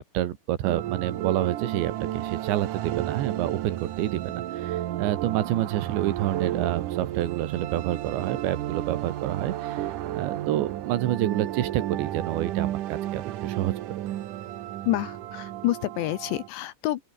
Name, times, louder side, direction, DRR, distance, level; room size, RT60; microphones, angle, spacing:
voice 1, 0.0-9.9 10.2-13.7, right 13 dB, 75° right, 3.6 m, -28 dB
sound 1, 0.6-16.5, right 13 dB, 90° right, 1.8 m, -32 dB
voice 2, 14.9-17.0, left 15 dB, 75° left, 3.1 m, -28 dB
open air
omnidirectional pair, 5.5 m